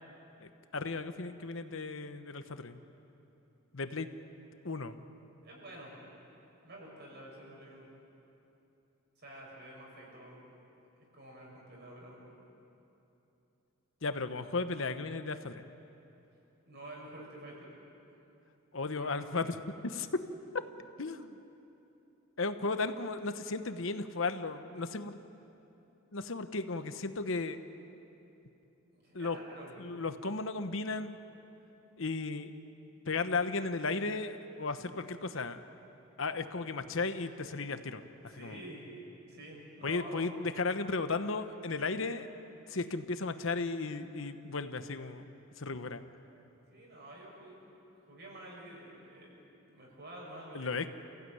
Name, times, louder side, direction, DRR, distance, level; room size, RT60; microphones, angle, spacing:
voice 1, 0.4-2.8 3.7-4.1 4.6-5.0 14.0-15.6 18.7-20.2 21.0-21.3 22.4-25.2 26.1-27.6 29.1-29.4 29.8-31.2 32.0-32.5 33.1-35.6 36.2-38.6 39.8-42.3 42.7-45.3 45.6-46.0 50.5-50.9, left 3 dB, 65° left, 9 dB, 1.0 m, -35 dB
voice 2, 5.4-5.9 6.6-7.9 9.2-10.4 11.0-12.3 16.7-17.7 18.9-19.1 22.6-22.7 28.9-29.8 38.3-38.9 39.3-40.3 46.7-47.7 48.1-50.9, right 1 dB, 50° right, -2 dB, 7.3 m, -49 dB
28.5 x 16.0 x 9.4 m, 2.9 s
head